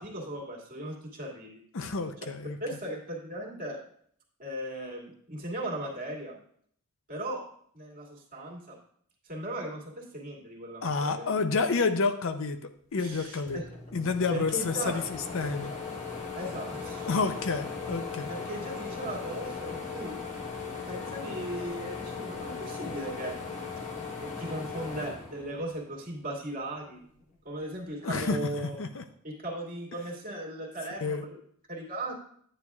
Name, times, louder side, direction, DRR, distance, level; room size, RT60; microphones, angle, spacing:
voice 1, 0.0-1.6 2.6-3.8 4.4-6.4 7.1-7.4 7.7-8.8 9.2-11.3 13.0-13.7 14.3-15.0 16.3-17.1 18.3-20.2 20.9-23.4 24.2-27.0 27.4-28.8 29.2-31.4 31.7-32.1, right 1 dB, 40° right, -2 dB, 2.2 m, -37 dB
voice 2, 1.7-2.6 10.8-12.6 12.9-13.6 13.9-15.7 17.1-18.3 28.0-28.4 28.8-29.0 31.0-31.2, left 4 dB, 65° left, 8 dB, 0.7 m, -29 dB
sound 1, 13.1-13.2 13.5-26.1 26.5-27.6, left 4 dB, 35° left, 1.3 m, -38 dB
9.8 x 9.5 x 2.4 m, 0.63 s
head